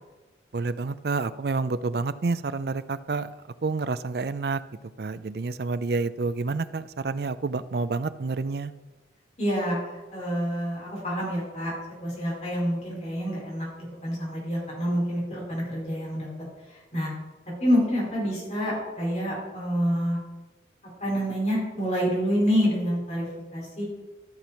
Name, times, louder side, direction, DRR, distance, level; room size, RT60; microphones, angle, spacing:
voice 1, 0.5-3.3 3.6-4.6 5.0-8.7, right 3 dB, 60° right, 15 dB, 0.5 m, -29 dB
voice 2, 9.4-9.8 10.1-11.7 12.0-16.3 16.7-17.1 17.6-20.2 21.0-23.2 23.5-23.8, equal, 40° left, -5 dB, 4.5 m, -27 dB
13.0 x 6.1 x 5.7 m, 1.1 s
head